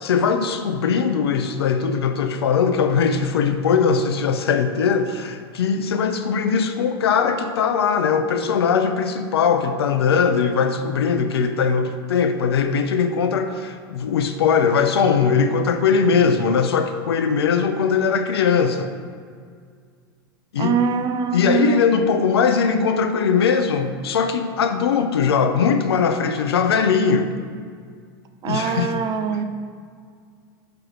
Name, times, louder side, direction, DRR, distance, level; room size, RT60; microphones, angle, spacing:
voice 1, 0.0-18.9 20.5-20.8 21.3-27.3 28.4-28.9 29.3-29.4, left 6 dB, 80° left, 8 dB, 0.7 m, -20 dB
voice 2, 20.6-21.9 28.4-29.4, right 6 dB, 35° right, 7 dB, 0.7 m, -23 dB
6.2 x 4.8 x 6.3 m, 2.1 s
hypercardioid pair, 105°, 13 cm